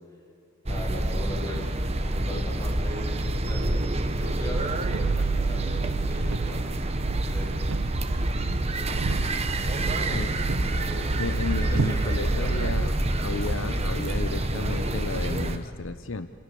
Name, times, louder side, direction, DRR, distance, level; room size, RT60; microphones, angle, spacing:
voice 1, 0.6-7.5 8.6-9.3 9.7-11.1 11.6-12.7, equal, 15° left, -2 dB, 7.1 m, -39 dB
sound 1, 0.7-15.6, right 1 dB, 30° right, 1.3 m, -28 dB
sound 2, 4.5-12.8, right 4 dB, 85° right, 0.6 m, -30 dB
sound 3, 10.0-15.7, left 1 dB, 45° left, 1.7 m, -43 dB
voice 2, 11.2-16.3, left 3 dB, 65° left, 10 dB, 0.9 m, -33 dB
29.0 x 27.5 x 7.0 m, 2.3 s
head